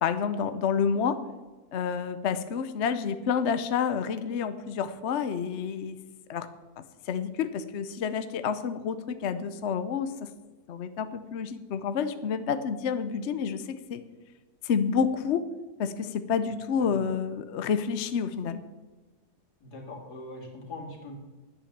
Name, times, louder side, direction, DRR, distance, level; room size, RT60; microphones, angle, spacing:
voice 1, 0.0-1.2 1.7-6.0 6.3-6.5 6.8-10.3 10.7-14.0 14.6-15.4 15.8-18.6, left 6 dB, 55° left, 11 dB, 0.8 m, -29 dB
voice 2, 19.6-21.1, left 2 dB, 80° left, 0 dB, 2.9 m, -41 dB
10.0 x 8.5 x 7.3 m, 1.2 s
omnidirectional pair, 1.7 m